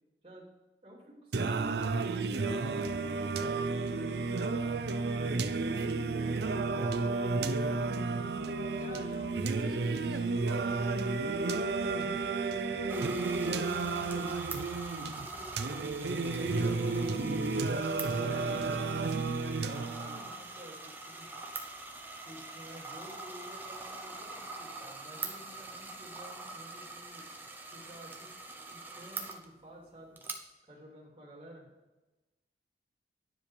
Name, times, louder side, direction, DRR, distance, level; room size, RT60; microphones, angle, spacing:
voice 1, 0.8-2.7 12.4-16.8 18.1-18.8 19.6-21.6 22.2-27.2 27.7-28.3 28.6-30.2 30.7-31.7, equal, 30° right, -4 dB, 2.8 m, -52 dB
Singing, 1.3-20.3, right 3 dB, 65° right, 0.5 m, -32 dB
voice 2, 5.4-6.4 8.7-11.6 18.0-18.6, left 2 dB, 50° left, 3 dB, 1.5 m, -50 dB
sound 1, 12.9-29.4 30.2-30.3, right 3 dB, 10° right, 0.8 m, -44 dB
10.0 x 5.2 x 4.8 m, 1.1 s
head